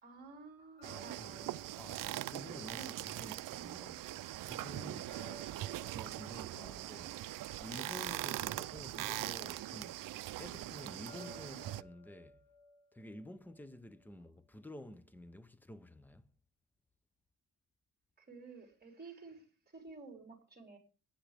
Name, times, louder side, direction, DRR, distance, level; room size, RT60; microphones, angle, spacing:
voice 1, 0.0-1.4 2.7-3.1 18.2-20.8, right 4 dB, 30° right, 4.1 m, -52 dB
sound 1, 0.8-3.9 5.1-8.6 11.1-14.2, left 3 dB, 85° left, 2.2 m, -59 dB
sound 2, 0.8-11.8, right 15 dB, 75° right, 0.5 m, -42 dB
voice 2, 1.0-5.3 5.9-7.2 7.6-10.1 10.4-12.4 12.9-16.3, left 1 dB, 5° left, 0.7 m, -51 dB
16.5 x 9.8 x 3.5 m
cardioid pair, 140°, 33 cm